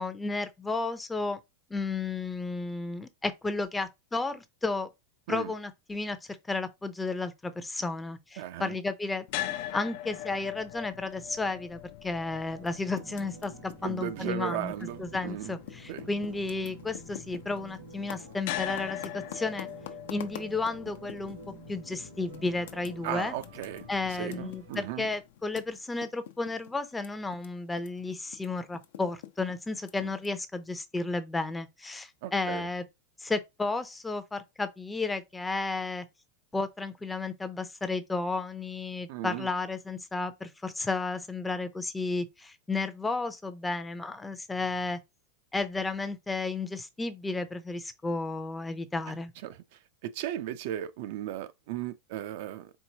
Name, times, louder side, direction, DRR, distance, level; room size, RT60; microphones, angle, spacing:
voice 1, 0.0-1.4 1.7-4.9 5.3-6.2 6.5-14.7 15.0-19.7 20.1-21.4 21.7-23.3 23.9-32.8 33.2-36.1 36.5-45.0 45.5-49.3, left 3 dB, 10° left, 0.6 m, -33 dB
voice 2, 8.4-8.8 13.8-15.6 15.9-16.1 23.0-23.9 24.2-25.0 30.0-30.1 32.2-32.7 39.1-39.5 49.4-49.6 50.0-52.7, right 12 dB, 60° right, 0.5 m, -36 dB
sound 1, 9.3-25.4, left 13 dB, 55° left, 0.5 m, -42 dB
Typing, 12.5-15.3 15.6-21.5 21.9-22.0 22.3-27.5 27.7-30.3, left 12 dB, 80° left, 0.8 m, -46 dB
sound 2, 12.5-25.1, right 6 dB, 80° right, 1.5 m, -51 dB
4.5 x 3.7 x 2.8 m
supercardioid pair, 145°, 0 cm